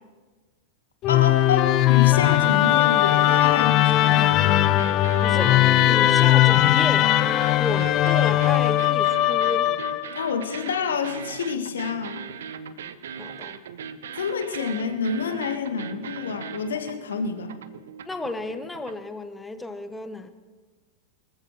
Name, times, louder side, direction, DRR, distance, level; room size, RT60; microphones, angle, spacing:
Musical instrument, 1.0-10.2, left 14 dB, 35° left, 0.5 m, -19 dB
voice 1, 1.1-4.6 10.1-12.2 14.1-17.5, left 6 dB, 65° left, 1.6 m, -28 dB
sound 1, 2.9-19.1, right 7 dB, 60° right, 0.8 m, -39 dB
voice 2, 5.2-7.1 7.6-9.8 13.2-13.6 18.1-20.3, left 2 dB, 10° left, 1.2 m, -32 dB
24.5 x 14.5 x 3.2 m
figure-of-eight pair, 90°, 0 cm